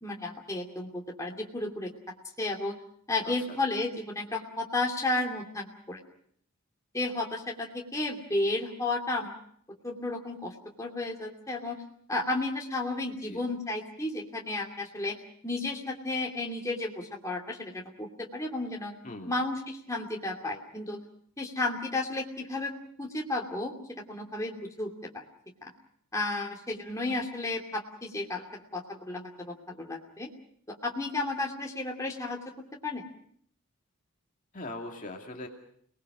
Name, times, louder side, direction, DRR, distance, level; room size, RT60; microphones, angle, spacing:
voice 1, 0.0-1.9 2.4-2.8 3.1-6.0 6.9-9.3 9.8-11.8 12.1-15.2 15.4-19.0 19.3-21.0 21.4-22.7 23.0-25.2 25.6-25.7 26.1-30.3 30.7-32.4 32.8-33.0, left 2 dB, 15° left, -1 dB, 2.7 m, -33 dB
voice 2, 3.2-3.6 13.2-13.4 19.0-19.3 34.5-35.5, left 2 dB, 35° left, 1 dB, 2.4 m, -41 dB
29.5 x 20.0 x 6.1 m, 0.63 s
head